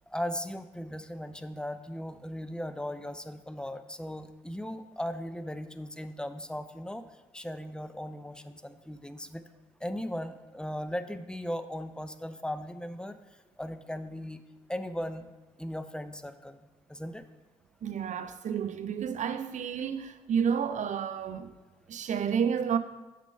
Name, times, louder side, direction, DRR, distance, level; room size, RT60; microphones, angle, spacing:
voice 1, 0.1-9.4 9.8-14.4 14.7-17.3, equal, 5° left, 0.5 m, -38 dB
voice 2, 17.8-21.5 21.9-22.8, right 7 dB, 55° right, 0.5 m, -30 dB
6.0 x 4.3 x 5.4 m
hypercardioid pair, 40°, 15 cm